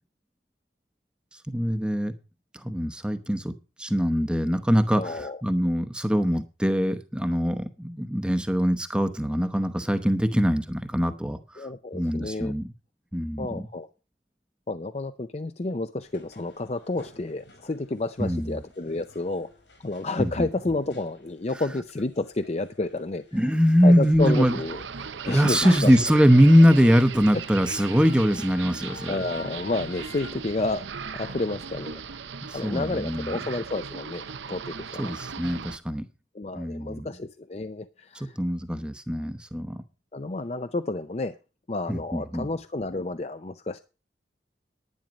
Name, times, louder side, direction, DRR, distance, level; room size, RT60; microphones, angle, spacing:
voice 1, 1.5-2.1 2.6-3.5 3.8-11.7 11.9-12.7 13.1-13.7 18.2-18.6 20.2-20.5 23.3-24.6 25.2-29.1 32.5-33.4 35.0-36.0 36.5-37.1 38.1-39.8 41.9-42.5, equal, 5° right, 9 dB, 0.8 m, -22 dB
voice 2, 4.9-5.4 11.6-12.5 13.4-13.9 14.7-19.5 19.8-23.5 23.8-24.8 25.2-26.0 27.9-28.0 29.1-32.0 32.5-35.1 36.3-38.4 40.1-41.4 41.7-43.8, left 2 dB, 35° left, 11 dB, 0.5 m, -30 dB
sound 1, 16.0-30.3, left 2 dB, 75° left, 4.2 m, -49 dB
sound 2, 24.2-35.8, right 6 dB, 85° right, 0.8 m, -37 dB
10.5 x 10.0 x 5.2 m, 0.32 s
head